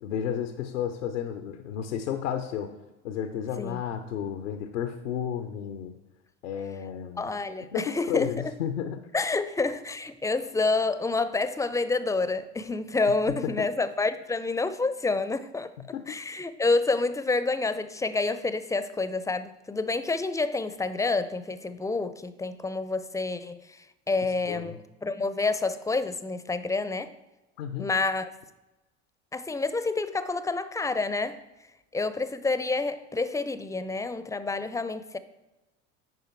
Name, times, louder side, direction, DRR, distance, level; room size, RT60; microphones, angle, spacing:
voice 1, 0.0-2.7 3.0-5.9 6.4-7.3 7.7-9.0 13.3-13.5 15.9-16.2 24.5-24.8 27.6-27.9, left 9 dB, 90° left, 0.7 m, -32 dB
voice 2, 7.2-8.3 9.1-15.7 16.1-23.8 24.1-27.1 27.8-28.3 29.3-31.4 31.9-35.2, left 3 dB, 10° left, 0.5 m, -28 dB
9.4 x 5.0 x 4.5 m
hypercardioid pair, 80°, 36 cm